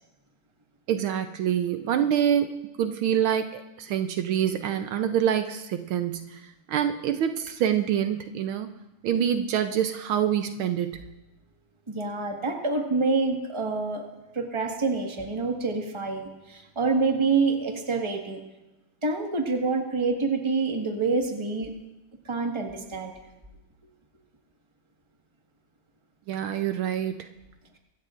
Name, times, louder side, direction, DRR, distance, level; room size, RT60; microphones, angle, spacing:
voice 1, 0.9-8.7 9.0-11.0 26.3-27.3, right 9 dB, 75° right, 8 dB, 1.4 m, -26 dB
voice 2, 11.9-14.0 14.3-18.4 19.0-21.7 22.2-23.1, right 4 dB, 15° right, 1 dB, 1.4 m, -27 dB
24.5 x 13.5 x 2.5 m, 0.99 s
omnidirectional pair, 2.4 m